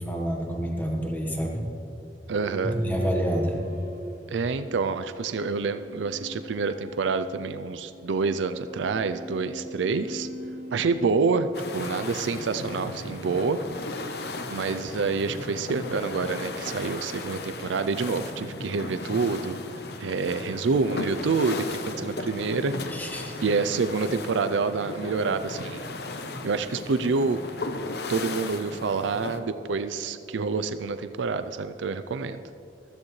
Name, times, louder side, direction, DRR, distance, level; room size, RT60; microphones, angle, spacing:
voice 1, 0.0-1.6 2.7-3.6 22.9-23.4, equal, 10° left, 1 dB, 1.3 m, -28 dB
sound 1, 2.3-11.9, equal, 45° right, 1.5 m, -41 dB
voice 2, 2.3-2.8 4.3-10.3 10.7-13.6 14.1-19.6 20.0-22.7 23.4-25.8 26.4-27.4 28.1-32.4, right 4 dB, 90° right, 11 dB, 0.4 m, -27 dB
sound 2, 11.5-29.4, left 2 dB, 60° left, 0.8 m, -36 dB
15.5 x 14.0 x 3.2 m, 2.8 s
head